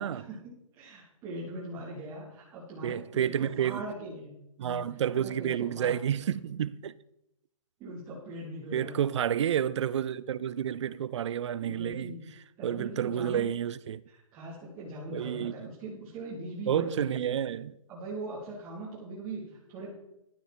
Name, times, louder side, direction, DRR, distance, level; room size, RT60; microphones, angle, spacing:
voice 1, 0.0-4.3 4.6-4.8 5.2-5.9 7.8-9.0 11.5-12.2 12.6-13.5 14.1-17.0 17.9-19.9, right 1 dB, 20° right, 2.9 m, -41 dB
voice 2, 2.8-3.8 4.6-7.0 8.7-12.1 12.6-14.0 15.1-15.7 16.7-17.8, right 9 dB, 55° right, 0.5 m, -30 dB
12.0 x 9.9 x 4.3 m
hypercardioid pair, 160°, 18 cm